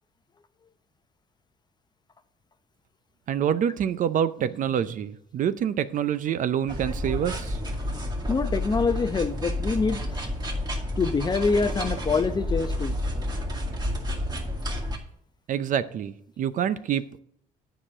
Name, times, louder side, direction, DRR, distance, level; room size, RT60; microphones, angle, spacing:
voice 1, 3.3-7.6 15.5-17.1, right 9 dB, 50° right, 14 dB, 0.6 m, -26 dB
sound 1, 6.7-15.0, left 1 dB, 25° right, 2.2 m, -30 dB
voice 2, 8.3-10.2 11.0-13.0, left 4 dB, 25° left, 11 dB, 0.7 m, -25 dB
10.0 x 4.9 x 7.5 m, 0.68 s
cardioid pair, 110°, 17 cm